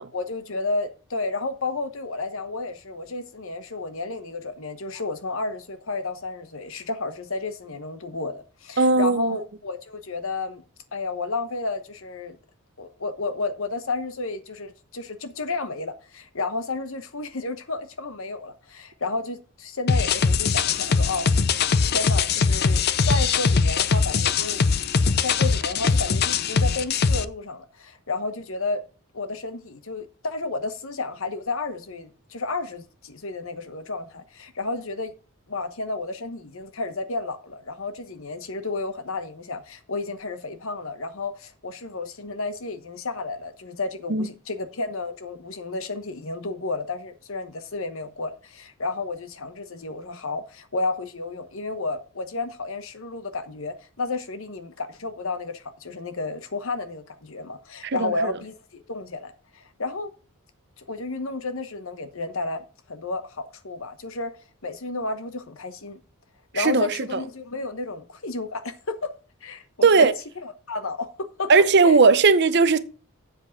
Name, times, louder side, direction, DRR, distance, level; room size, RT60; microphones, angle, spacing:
voice 1, 0.1-10.6 10.9-12.4 12.8-21.3 21.9-24.6 25.2-28.8 29.1-35.1 35.5-60.1 60.8-64.3 64.6-66.0 66.5-69.1 69.4-70.1 70.4-71.5 71.8-72.0, left 3 dB, 65° left, 1.1 m, -32 dB
voice 2, 8.8-9.4 44.1-44.3 57.8-58.3 66.5-66.9 69.8-70.1 71.5-72.8, right 4 dB, 50° right, 0.7 m, -17 dB
sound 1, 19.9-27.2, left 5 dB, 45° left, 0.5 m, -21 dB
7.7 x 7.5 x 5.9 m
head